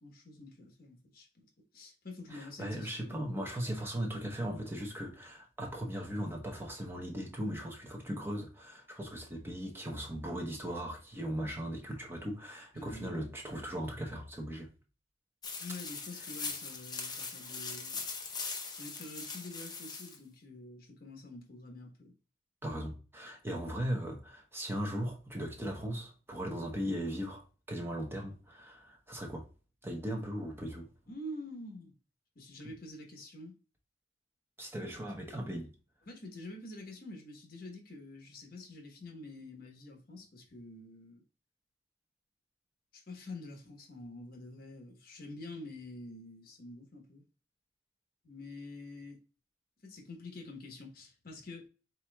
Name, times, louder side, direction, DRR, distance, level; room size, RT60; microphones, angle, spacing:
voice 1, 0.0-3.4 12.7-13.3 15.6-18.1 18.7-22.1 31.1-32.0 32.3-33.5 36.1-41.2 42.9-47.2 48.2-49.2 49.8-51.6, left 2 dB, 50° left, 1.1 m, -47 dB
voice 2, 2.3-14.7 22.6-29.5 29.8-30.9 34.6-35.7, equal, 10° right, 0.8 m, -38 dB
sound 1, 15.4-20.2, left 4 dB, 20° left, 0.7 m, -41 dB
4.5 x 4.2 x 2.2 m
head